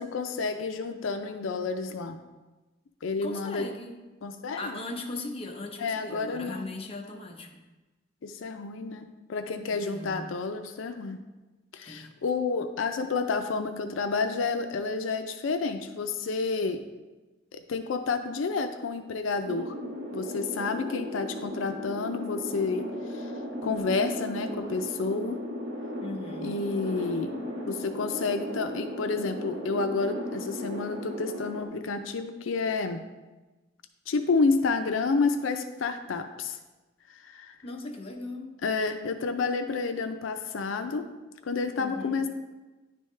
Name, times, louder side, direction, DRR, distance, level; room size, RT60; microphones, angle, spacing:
voice 1, 0.0-2.2 3.0-3.7 4.2-4.8 5.8-6.7 8.2-11.2 11.7-16.8 17.5-19.7 20.1-23.3 23.6-25.4 26.4-27.4 27.6-33.0 34.1-36.6 37.1-37.6 38.6-41.1 41.4-42.3, left 4 dB, 85° left, 7 dB, 0.4 m, -30 dB
voice 2, 3.2-4.0 4.6-7.5 9.7-10.2 11.8-12.1 26.0-26.6 37.6-38.6 41.7-42.2, left 2 dB, 30° left, 1 dB, 0.7 m, -38 dB
sound 1, 19.4-31.7, equal, 70° right, 1.4 m, -36 dB
10.0 x 3.5 x 3.2 m, 1.2 s
head